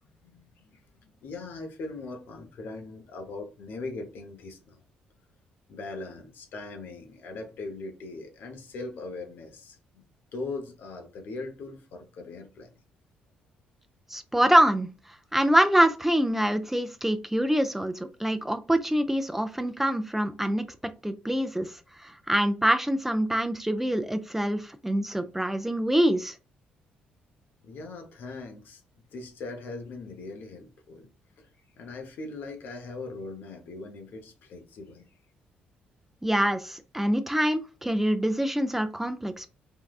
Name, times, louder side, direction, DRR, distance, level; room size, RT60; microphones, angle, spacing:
voice 1, 0.2-4.8 5.7-10.0 10.3-12.8 27.6-31.1 31.4-31.5 31.8-35.1, left 3 dB, 70° left, 0.8 m, -40 dB
voice 2, 14.1-14.9 15.3-20.7 21.0-21.7 22.0-26.4 36.2-39.5, right 1 dB, 10° right, 0.4 m, -25 dB
3.6 x 2.3 x 2.3 m
supercardioid pair, 65°, 4 cm